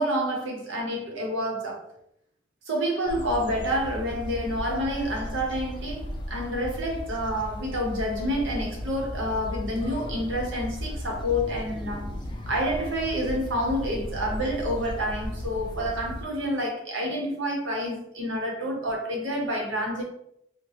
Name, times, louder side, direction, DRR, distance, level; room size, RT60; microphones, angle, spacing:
voice 1, 0.0-1.8 2.7-12.1 12.5-20.0, equal, 75° right, 0.8 m, -28 dB
sound 1, 3.1-16.2, equal, 25° left, 0.3 m, -36 dB
2.8 x 2.1 x 3.1 m
head